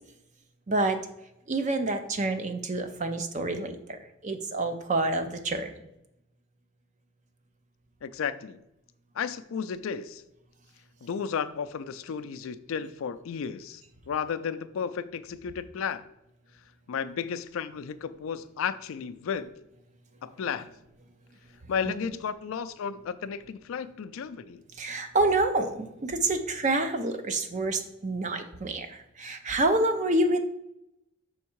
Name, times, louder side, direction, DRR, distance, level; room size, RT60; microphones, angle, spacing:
voice 1, 0.7-1.0 1.5-3.8 4.2-5.7 24.8-30.4, right 2 dB, 35° right, 8 dB, 0.5 m, -27 dB
voice 2, 8.0-8.6 9.1-10.2 11.0-16.1 16.9-19.5 20.2-20.7 21.7-24.6, left 7 dB, 70° left, 13 dB, 0.4 m, -33 dB
6.2 x 3.6 x 4.5 m, 0.85 s
head